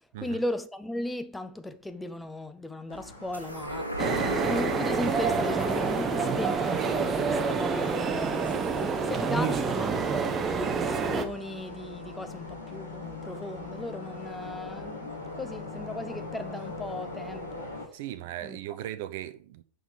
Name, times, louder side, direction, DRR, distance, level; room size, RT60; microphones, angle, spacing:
voice 1, 0.2-4.2 4.4-8.6 9.0-17.7 18.4-18.6, left 1 dB, 5° left, 0.7 m, -36 dB
sound 1, 2.9-17.9, left 3 dB, 80° left, 2.3 m, -42 dB
sound 2, 3.3-10.1 10.5-10.6, right 1 dB, 90° right, 1.5 m, -39 dB
sound 3, 4.0-11.3, right 5 dB, 20° right, 0.8 m, -27 dB
voice 2, 17.9-19.6, right 12 dB, 50° right, 0.6 m, -38 dB
6.3 x 5.7 x 5.1 m
figure-of-eight pair, 90°, 0 cm